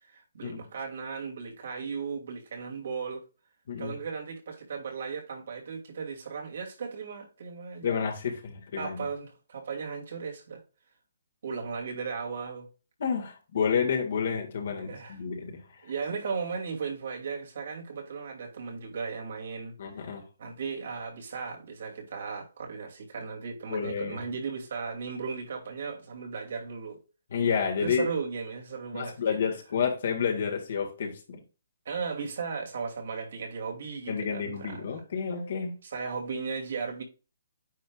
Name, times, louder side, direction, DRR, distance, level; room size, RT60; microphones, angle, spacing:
voice 1, 0.1-3.2 3.8-7.9 8.8-10.6 11.4-12.7 14.7-15.2 15.8-19.8 20.4-27.0 27.8-29.4 31.8-34.8 35.8-37.0, right 5 dB, 65° right, 2.6 m, -36 dB
voice 2, 7.8-9.0 13.0-15.6 19.8-20.2 23.7-24.2 27.3-28.1 28.9-31.4 34.1-35.7, left 6 dB, 60° left, 1.8 m, -30 dB
9.3 x 4.5 x 2.4 m
hypercardioid pair, 150°, 0 cm